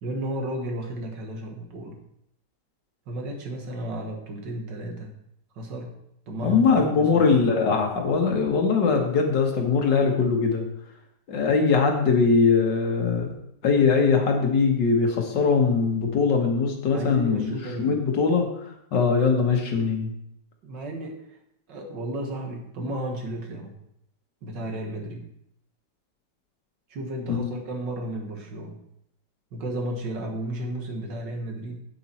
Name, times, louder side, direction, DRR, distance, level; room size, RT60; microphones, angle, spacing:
voice 1, 0.0-2.0 3.1-5.1 5.6-6.0 6.3-7.3 16.9-18.0 20.6-21.2 21.7-23.8 24.4-25.3 26.9-28.8 29.5-31.8, right 1 dB, 75° right, 2 dB, 2.2 m, -33 dB
voice 2, 6.4-10.6 11.3-13.3 13.6-17.5 17.8-20.1 27.3-27.6, left 5 dB, 75° left, 2 dB, 2.2 m, -21 dB
8.6 x 8.3 x 4.4 m, 0.76 s
omnidirectional pair, 1.9 m